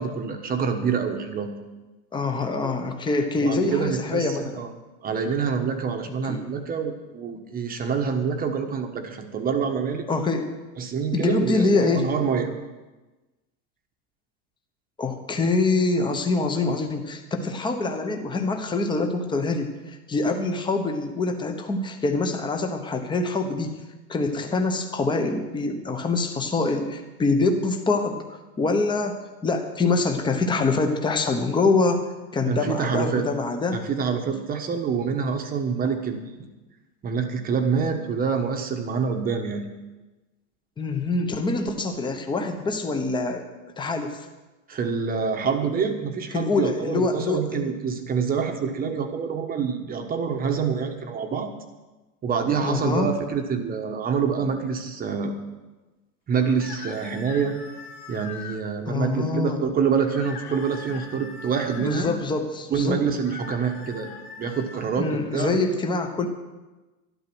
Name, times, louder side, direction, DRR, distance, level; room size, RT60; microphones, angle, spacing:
voice 1, 0.0-1.5 3.4-4.7 5.0-10.0 10.8-12.5 32.5-33.2 33.7-36.5 37.0-39.7 44.7-51.5 52.2-55.3 56.3-57.6 58.1-62.1 62.7-64.1 64.4-65.6, right 6 dB, 20° right, 5 dB, 1.2 m, -26 dB
voice 2, 2.1-4.6 6.3-6.4 10.1-10.5 11.1-12.1 15.0-23.8 24.1-32.0 32.3-33.8 40.8-43.4 43.8-44.3 46.3-47.7 52.6-53.1 58.9-59.6 61.8-63.0 65.0-66.3, left 3 dB, 10° left, 5 dB, 1.0 m, -25 dB
sound 1, 56.4-58.6 60.0-62.2 63.1-65.2, left 5 dB, 65° left, 3.0 m, -41 dB
12.0 x 12.0 x 6.1 m, 1.1 s
supercardioid pair, 150°, 47 cm